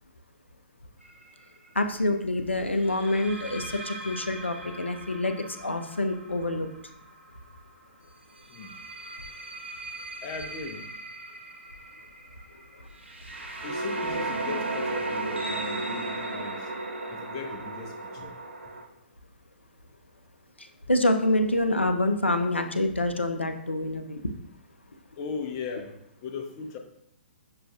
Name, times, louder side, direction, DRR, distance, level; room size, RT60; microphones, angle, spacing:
sound 1, 1.0-1.3 2.8-7.6 8.4-18.8, right 2 dB, 80° right, 0.6 m, -36 dB
voice 1, 1.8-6.7 20.6-24.2, left 1 dB, 85° left, 7 dB, 0.4 m, -26 dB
voice 2, 10.2-10.9 13.6-16.7 17.1-18.4 25.2-25.9 26.2-26.8, left 5 dB, 30° left, 5 dB, 0.5 m, -38 dB
6.6 x 2.3 x 2.5 m, 0.76 s
figure-of-eight pair, 120°, 6 cm